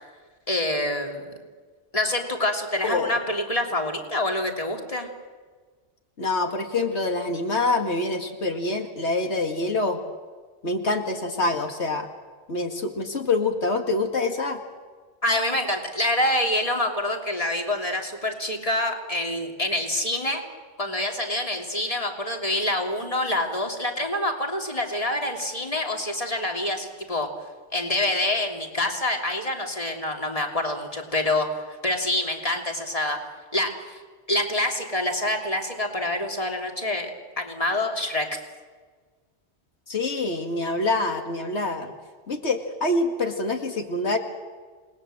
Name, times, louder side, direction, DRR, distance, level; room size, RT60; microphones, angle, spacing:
voice 1, 0.5-1.3 1.9-5.1 15.2-20.4 20.8-27.3 27.7-33.2 33.5-34.0 34.3-37.1 37.4-38.4, left 1 dB, 30° left, 2 dB, 3.1 m, -26 dB
voice 2, 2.8-3.2 6.2-10.0 10.6-12.1 12.5-14.6 39.9-41.9 42.3-44.2, left 2 dB, 90° left, 4 dB, 2.3 m, -26 dB
28.5 x 20.0 x 7.8 m, 1.4 s
omnidirectional pair, 1.1 m